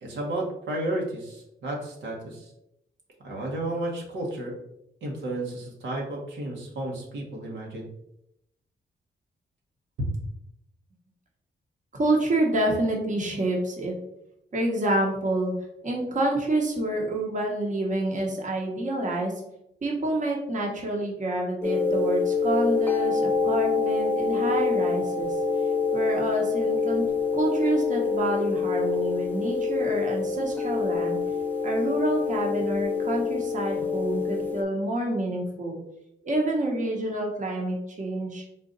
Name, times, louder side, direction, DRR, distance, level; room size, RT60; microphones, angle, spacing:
voice 1, 0.0-2.5 3.2-4.5 5.0-7.9, right 1 dB, 85° right, -2 dB, 1.1 m, -32 dB
voice 2, 11.9-13.9 14.5-15.5 15.8-19.3 19.8-25.3 25.9-27.0 27.3-31.2 31.6-35.8 36.2-38.4, right 1 dB, 40° right, 0 dB, 1.0 m, -28 dB
sound 1, 21.6-34.6, left 4 dB, 10° left, 0.6 m, -26 dB
3.9 x 2.5 x 3.9 m, 0.81 s
cardioid pair, 90°, 19 cm